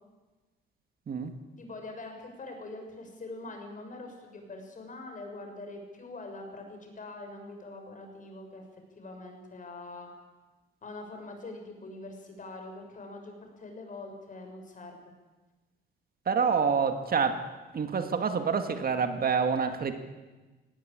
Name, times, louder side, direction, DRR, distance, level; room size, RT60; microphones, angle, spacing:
voice 1, 1.6-8.6 9.0-10.1 10.8-15.0, left 2 dB, 40° left, 4 dB, 6.3 m, -43 dB
voice 2, 16.3-17.5 17.7-19.9, right 6 dB, 50° right, 8 dB, 2.1 m, -27 dB
19.5 x 17.5 x 8.8 m, 1.2 s
cardioid pair, 90°, 20 cm